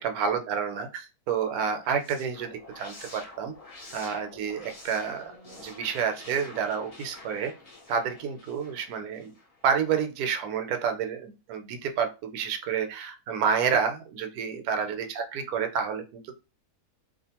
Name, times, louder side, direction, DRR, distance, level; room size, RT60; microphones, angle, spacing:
voice 1, 0.0-3.5 3.9-7.5 7.9-9.3 9.6-16.3, right 6 dB, 75° right, 6 dB, 1.0 m, -29 dB
sound 1, 1.6-9.7, left 2 dB, 45° left, 0.5 m, -48 dB
2.5 x 2.4 x 2.8 m, 0.29 s
omnidirectional pair, 1.6 m